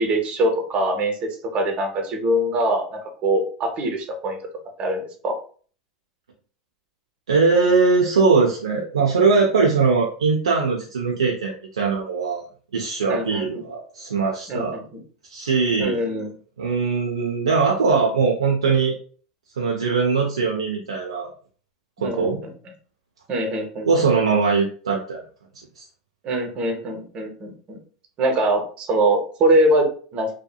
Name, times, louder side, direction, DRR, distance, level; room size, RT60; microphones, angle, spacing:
voice 1, 0.0-4.4 4.8-5.3 13.1-13.6 14.5-15.0 15.8-16.3 22.0-22.3 23.3-23.9 26.2-27.8 28.2-30.3, right 1 dB, 40° right, 3 dB, 0.8 m, -23 dB
voice 2, 7.3-12.4 12.7-14.8 15.3-16.0 16.6-19.0 19.6-21.3 22.0-22.4 23.8-25.2 25.8-25.9, right 4 dB, 90° right, -1 dB, 0.4 m, -21 dB
2.8 x 2.3 x 2.2 m, 0.43 s
hypercardioid pair, 90°, 3 cm